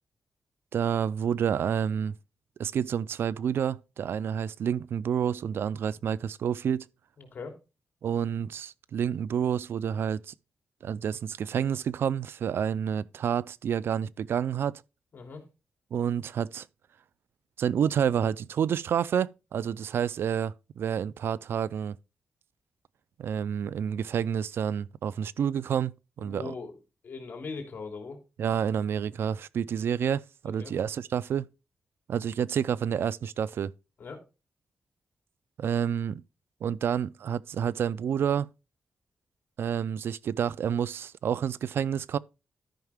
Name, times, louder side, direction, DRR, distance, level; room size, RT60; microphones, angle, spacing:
voice 1, 0.7-2.2 2.6-6.9 8.0-10.3 10.8-14.8 15.9-16.7 17.6-22.0 23.2-26.5 28.4-31.5 32.1-33.7 35.6-36.2 36.6-38.5 39.6-42.2, right 8 dB, 75° right, 0.4 m, -29 dB
voice 2, 7.2-7.6 15.1-15.4 26.2-26.8 27.0-28.2 30.4-30.7 34.0-34.2, left 4 dB, 55° left, 3.1 m, -40 dB
13.0 x 5.6 x 3.5 m
wide cardioid pair, 105°, 4 cm